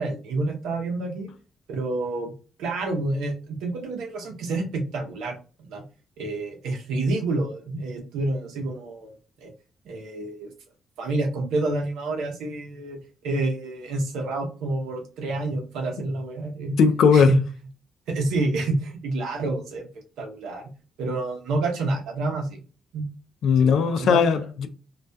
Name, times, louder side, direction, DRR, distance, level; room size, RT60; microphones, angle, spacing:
voice 1, 0.0-1.3 1.7-2.3 2.6-5.4 5.7-5.8 6.2-9.2 9.4-9.5 9.8-10.5 11.0-13.0 13.2-16.8 17.1-17.4 18.1-19.9 20.2-20.7 21.0-22.6 22.9-23.1 23.6-24.2, right 2 dB, 85° right, 0.7 m, -28 dB
voice 2, 16.8-17.3 23.4-24.7, left 6 dB, 70° left, 0.3 m, -18 dB
2.3 x 2.2 x 2.5 m
cardioid pair, 90°, 0 cm